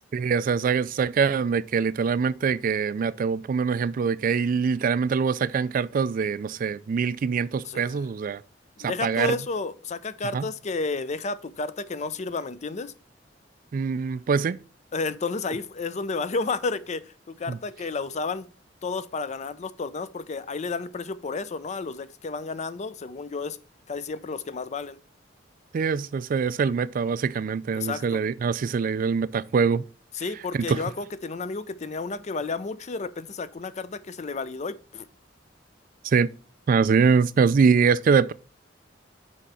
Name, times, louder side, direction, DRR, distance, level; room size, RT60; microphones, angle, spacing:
voice 1, 0.1-8.4 8.8-9.4 10.3-10.5 13.7-14.6 17.5-17.6 25.7-29.8 30.5-30.8 36.0-36.3 36.7-38.3, right 5 dB, 45° right, 0.3 m, -23 dB
voice 2, 7.6-8.0 8.8-12.9 14.9-18.5 18.8-23.6 23.9-25.0 27.7-28.2 30.1-35.1, left 4 dB, 40° left, 0.5 m, -31 dB
6.2 x 4.6 x 5.5 m
head